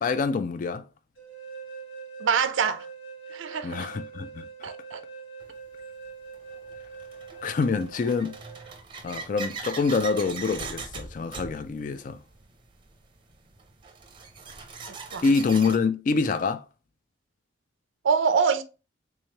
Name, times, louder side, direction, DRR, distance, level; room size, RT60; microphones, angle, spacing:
voice 1, 0.0-0.8 3.6-4.7 7.4-8.4 9.0-12.2 15.2-16.6, left 4 dB, 45° left, 0.3 m, -26 dB
sound 1, 1.2-8.8, right 5 dB, 85° left, 1.4 m, -43 dB
voice 2, 2.2-2.9 3.3-3.9 4.6-5.0 15.1-15.2 18.0-18.6, right 6 dB, 85° right, 0.4 m, -25 dB
sound 2, 5.4-5.5 6.3-15.8, right 4 dB, 25° right, 0.6 m, -40 dB
3.6 x 3.2 x 2.8 m
head